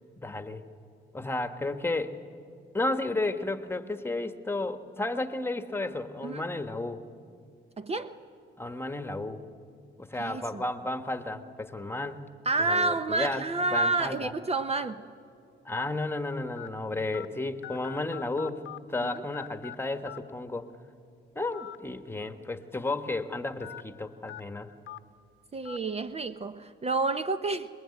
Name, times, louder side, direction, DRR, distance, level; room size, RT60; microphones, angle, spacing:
voice 1, 0.2-0.6 1.1-2.2 2.7-7.0 8.6-9.4 10.0-12.3 12.6-14.3 15.6-20.7 21.3-24.7, left 2 dB, 10° left, 8 dB, 1.4 m, -33 dB
voice 2, 7.8-8.1 10.2-10.6 12.4-15.0 19.1-19.2 25.5-27.7, right 3 dB, 30° right, 10 dB, 0.8 m, -29 dB
sound 1, 13.6-13.8 14.5-14.6 15.8-15.9 16.6-16.7 17.1-17.3 17.6-18.8 19.0-19.8 20.1-20.2 21.5-21.8 22.1-22.2 23.6-23.8 24.3-24.4 24.9-25.0 25.7-25.8, left 12 dB, 75° left, 0.9 m, -42 dB
25.5 x 21.0 x 9.8 m, 2.4 s
cardioid pair, 90°, 20 cm